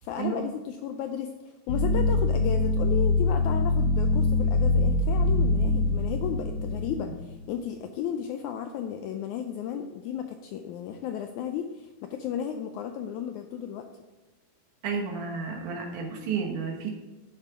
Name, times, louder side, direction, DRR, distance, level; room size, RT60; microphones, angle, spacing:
voice 1, 0.0-1.3 1.7-13.9, left 8 dB, 85° left, 6 dB, 1.7 m, -34 dB
sound 1, 1.7-7.4, left 2 dB, 60° left, 1.2 m, -24 dB
voice 2, 14.8-16.9, right 5 dB, 65° right, 1 dB, 2.7 m, -31 dB
11.5 x 7.4 x 3.7 m, 1.2 s
omnidirectional pair, 3.9 m